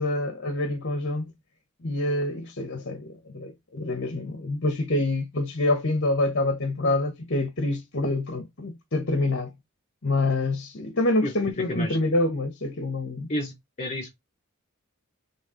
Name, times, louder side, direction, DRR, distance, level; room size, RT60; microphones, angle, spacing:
voice 1, 0.0-1.3 1.8-9.5 10.0-13.3, left 2 dB, 55° left, 1.2 m, -26 dB
voice 2, 13.3-14.1, equal, 30° left, 3.8 m, -31 dB
7.2 x 3.4 x 5.0 m
head